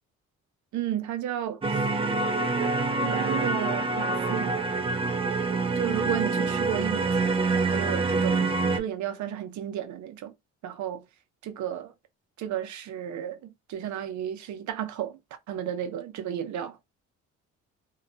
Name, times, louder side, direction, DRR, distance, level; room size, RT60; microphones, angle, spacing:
voice 1, 0.7-1.9 3.0-4.6 5.8-7.2 7.5-8.4 8.7-10.3 10.6-11.0 11.4-11.9 12.4-15.2 15.5-16.8, right 10 dB, 70° right, 0.6 m, -33 dB
sound 1, 1.6-8.8, right 3 dB, 20° right, 0.4 m, -26 dB
2.8 x 2.2 x 2.4 m
cardioid pair, 90°, 30 cm